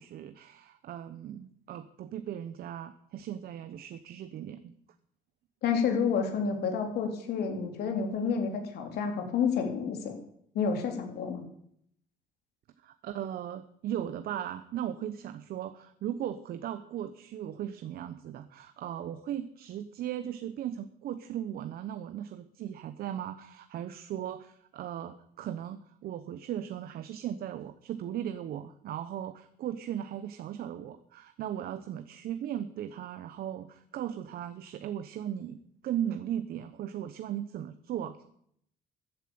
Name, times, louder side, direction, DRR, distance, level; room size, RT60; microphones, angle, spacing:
voice 1, 0.0-4.7 12.8-38.2, right 10 dB, 65° right, 10 dB, 1.0 m, -37 dB
voice 2, 5.6-10.2 10.5-11.4, left 6 dB, 70° left, 4 dB, 3.7 m, -29 dB
14.5 x 9.1 x 8.8 m, 0.70 s
cardioid pair, 110°, 17 cm